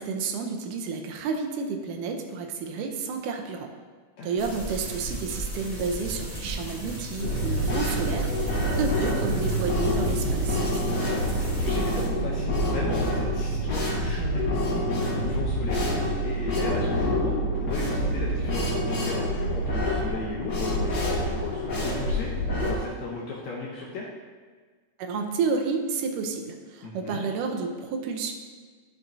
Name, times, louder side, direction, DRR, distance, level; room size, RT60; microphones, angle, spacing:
voice 1, 0.0-3.7 4.2-10.6 25.0-28.3, right 4 dB, 85° right, 4 dB, 2.3 m, -30 dB
voice 2, 4.2-4.7 11.6-22.3 22.6-24.1 26.8-27.2, left 3 dB, 70° left, -4 dB, 1.9 m, -36 dB
sound 1, 4.4-12.1, right 1 dB, 25° right, 0.9 m, -36 dB
sound 2, 7.2-22.8, equal, 40° left, 1.6 m, -27 dB
11.5 x 5.9 x 2.7 m, 1.5 s
omnidirectional pair, 3.6 m